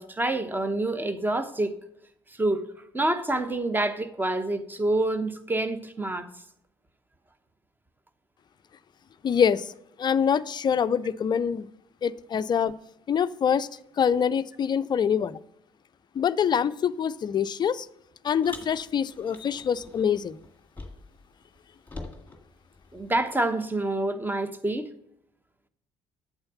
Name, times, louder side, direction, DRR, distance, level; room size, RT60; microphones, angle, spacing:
voice 1, 0.0-1.8 2.4-6.3 22.9-24.9, right 2 dB, 15° right, 0.9 m, -27 dB
voice 2, 9.2-9.7 10.0-11.7 12.0-12.7 13.1-13.7 14.0-15.4 16.2-17.9 18.2-20.4, left 7 dB, 30° left, 0.5 m, -25 dB
Car, 18.4-21.2 21.5-23.3, left 2 dB, 15° left, 1.9 m, -45 dB
8.7 x 7.3 x 5.6 m
figure-of-eight pair, 50°, 14 cm